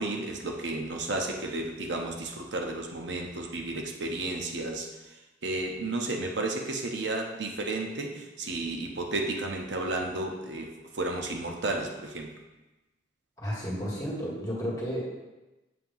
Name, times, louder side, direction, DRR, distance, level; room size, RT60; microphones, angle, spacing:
voice 1, 0.0-4.9 5.4-12.3, right 2 dB, 65° right, 2 dB, 0.8 m, -32 dB
voice 2, 13.4-15.1, equal, 20° left, -5 dB, 1.7 m, -32 dB
7.5 x 2.9 x 5.4 m, 1.1 s
head